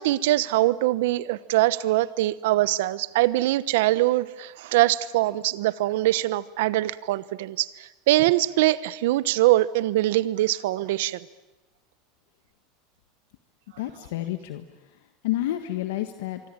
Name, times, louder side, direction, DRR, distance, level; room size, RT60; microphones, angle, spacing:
voice 1, 0.0-11.2, right 16 dB, 75° right, 18 dB, 0.9 m, -23 dB
voice 2, 13.8-14.6 15.2-16.4, left 14 dB, 80° left, 8 dB, 1.5 m, -29 dB
26.0 x 24.0 x 8.8 m, 1.0 s
supercardioid pair, 150°, 0 cm